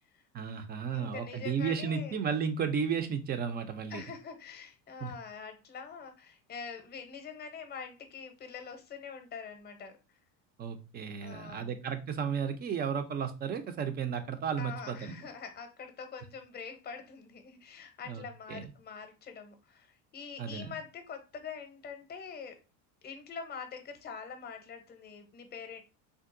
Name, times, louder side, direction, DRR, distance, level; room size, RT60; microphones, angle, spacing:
voice 1, 0.3-4.0 5.0-5.1 10.6-15.1 18.1-18.2 18.5-18.7 20.4-20.7, right 7 dB, 25° right, 9 dB, 0.4 m, -33 dB
voice 2, 0.9-2.1 3.9-10.0 11.2-11.8 14.6-22.6 23.0-25.8, left 6 dB, 25° left, 7 dB, 0.7 m, -44 dB
3.6 x 2.5 x 2.4 m, 0.29 s
supercardioid pair, 120°, 37 cm